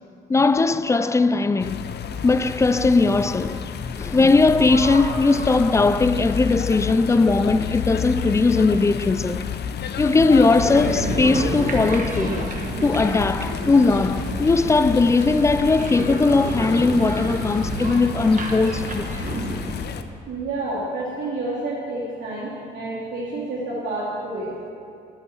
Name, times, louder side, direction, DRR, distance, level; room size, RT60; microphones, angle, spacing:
voice 1, 0.3-1.9 2.2-9.4 10.0-12.4 12.8-19.3, left 3 dB, 15° left, 0.3 m, -19 dB
sound 1, 1.6-20.0, left 7 dB, 55° left, 0.7 m, -30 dB
voice 2, 4.7-5.0 5.4-5.5 11.2-11.3 19.0-19.1 20.3-24.5, right 2 dB, 65° right, 2.4 m, -29 dB
sound 2, 10.5-19.8, right 2 dB, 40° right, 1.5 m, -30 dB
12.5 x 8.9 x 4.4 m
cardioid pair, 90°, 20 cm